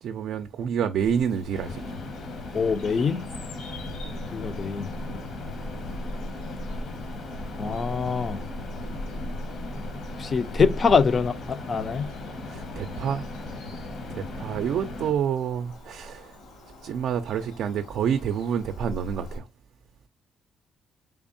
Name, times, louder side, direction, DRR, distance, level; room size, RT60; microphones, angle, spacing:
voice 1, 0.0-1.8 12.5-13.3 14.1-16.3 16.8-19.4, right 8 dB, 75° right, 0.3 m, -28 dB
Bird vocalization bird call bird song, 1.0-19.4, equal, 85° left, 2.2 m, -40 dB
sound 1, 1.5-15.1, left 2 dB, 65° left, 1.1 m, -37 dB
voice 2, 2.5-3.2 4.3-4.9 7.6-8.4 10.2-12.1, left 5 dB, 45° left, 0.4 m, -24 dB
3.4 x 3.4 x 2.5 m
cardioid pair, 90°, 0 cm